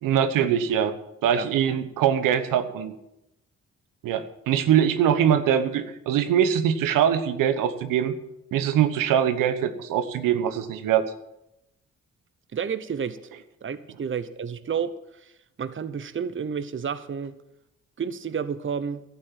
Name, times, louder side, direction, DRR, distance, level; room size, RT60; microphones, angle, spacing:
voice 1, 0.0-0.9 1.2-2.9 4.0-8.2 8.5-11.0, right 9 dB, 80° right, 10 dB, 1.1 m, -22 dB
voice 2, 12.5-13.3 13.6-15.3 15.6-17.4 18.0-19.0, right 7 dB, 40° right, 13 dB, 0.9 m, -31 dB
12.0 x 8.7 x 7.6 m, 0.85 s
supercardioid pair, 50°, 32 cm